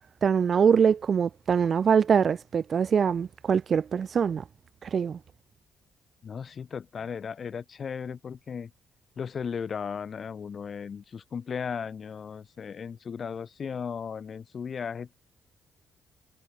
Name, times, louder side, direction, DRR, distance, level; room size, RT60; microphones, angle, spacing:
voice 1, 0.2-4.4 4.8-5.2, right 7 dB, 50° right, 0.3 m, -23 dB
voice 2, 6.2-8.7 9.2-15.1, left 6 dB, 45° left, 2.9 m, -36 dB
cardioid pair, 90°, 0 cm